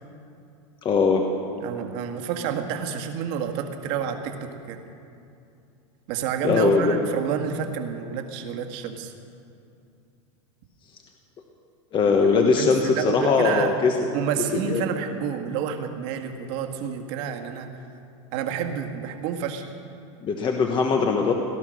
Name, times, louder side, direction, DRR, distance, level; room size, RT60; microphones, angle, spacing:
voice 1, 0.8-1.2 6.4-7.1 11.9-13.9 14.5-14.8 20.2-21.3, left 5 dB, 30° left, 3 dB, 1.3 m, -21 dB
voice 2, 1.6-4.8 6.1-9.1 12.0-12.3 12.6-13.8 14.1-17.7 18.3-19.8, right 8 dB, 60° right, 5 dB, 1.7 m, -29 dB
18.0 x 11.5 x 6.4 m, 2.6 s
supercardioid pair, 125°, 16 cm